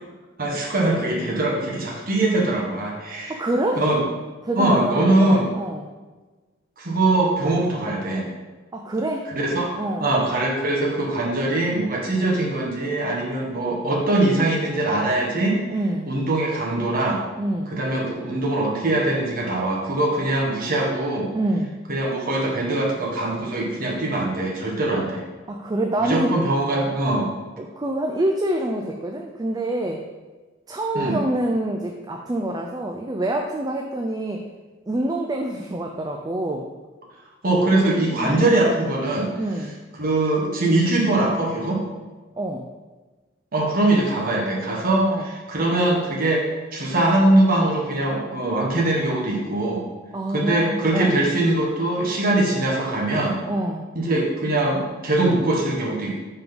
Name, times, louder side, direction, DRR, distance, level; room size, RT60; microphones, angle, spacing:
voice 1, 0.4-3.4 3.7-4.0 4.5-5.5 6.8-8.3 9.3-15.6 16.1-17.2 17.7-21.3 21.9-25.2 26.0-27.3 30.9-31.2 37.4-39.3 40.0-41.8 43.5-49.8 50.3-53.4 53.9-56.1, right 2 dB, 45° right, -2 dB, 1.3 m, -22 dB
voice 2, 3.3-3.8 4.4-5.8 8.7-9.2 9.7-10.1 15.7-16.1 17.4-17.7 21.3-21.7 25.5-26.3 27.6-30.0 30.7-34.5 34.9-36.7 38.2-38.5 39.4-39.7 42.3-42.7 44.9-45.3 50.1-51.2 53.5-53.9, right 1 dB, 20° right, 1 dB, 0.4 m, -26 dB
5.9 x 3.8 x 5.2 m, 1.3 s
head